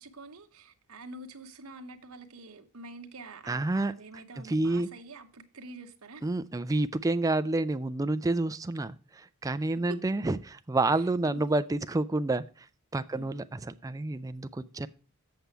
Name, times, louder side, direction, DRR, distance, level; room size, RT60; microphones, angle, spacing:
voice 1, 0.0-6.3 9.9-10.0 10.9-11.4 13.1-13.4, right 2 dB, 75° right, 1.1 m, -46 dB
voice 2, 3.5-3.9 4.4-4.9 6.2-12.7 12.9-14.9, right 2 dB, 15° right, 0.4 m, -29 dB
7.9 x 6.8 x 4.6 m
head